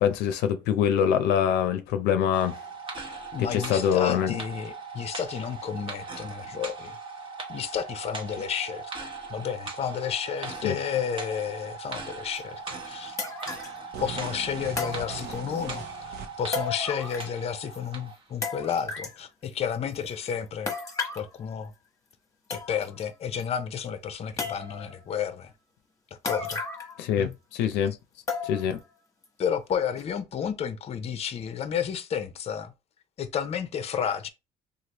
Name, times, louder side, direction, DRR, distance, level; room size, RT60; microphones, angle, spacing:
voice 1, 0.0-2.6 3.5-4.4 10.6-10.8 27.0-27.9 28.4-28.8, left 9 dB, 85° left, 0.5 m, -24 dB
sound 1, 2.3-18.2 18.7-18.8, right 4 dB, 30° right, 0.8 m, -39 dB
voice 2, 3.3-7.0 7.5-13.2 14.0-20.7 21.2-21.7 22.5-25.5 26.2-26.6 27.2-27.3 29.4-32.7 33.2-34.3, left 8 dB, 40° left, 0.5 m, -31 dB
sound 2, 12.4-12.5 13.2-13.8 14.8-15.6 16.5-17.4 17.7-17.8 18.4-19.2 20.7-21.3 22.1-22.2 22.5-23.0 23.4-23.5 24.4-25.0 26.2-27.0 27.3-27.4 28.3-28.8 29.2-29.3 30.0-30.1, left 4 dB, 20° left, 0.9 m, -34 dB
sound 3, 13.9-16.6, right 6 dB, 70° right, 0.7 m, -40 dB
3.2 x 2.4 x 2.9 m
cardioid pair, 110°, 17 cm